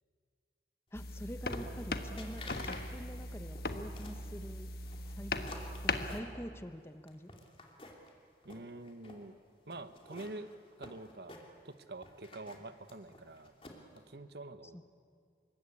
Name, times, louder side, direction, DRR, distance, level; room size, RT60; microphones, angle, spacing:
sound 1, 0.9-6.2, left 2 dB, 60° left, 1.4 m, -39 dB
voice 1, 0.9-4.7 5.2-5.4 5.8-7.3 14.7-14.8, equal, 15° left, 10 dB, 0.9 m, -46 dB
sound 2, 1.5-1.9 2.2-2.8 3.1-4.2 4.8-6.7 7.1-8.1 8.4-9.2 9.7-11.7 12.0-14.0, left 2 dB, 30° left, 2.8 m, -51 dB
voice 2, 8.4-9.4 9.7-10.5 10.8-11.4 11.6-13.5 13.9-14.8, right 2 dB, 70° right, 11 dB, 1.1 m, -46 dB
26.0 x 22.5 x 8.6 m, 2.2 s
head